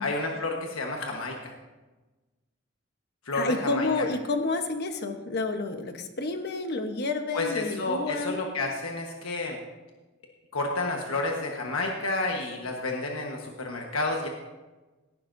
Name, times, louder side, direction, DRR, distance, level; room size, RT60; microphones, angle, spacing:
voice 1, 0.0-1.5 3.2-4.1 7.3-9.6 10.5-14.3, left 2 dB, 75° left, 1 dB, 1.3 m, -30 dB
voice 2, 3.3-8.4, left 3 dB, 55° left, 6 dB, 1.1 m, -30 dB
18.0 x 11.0 x 2.7 m, 1.2 s
head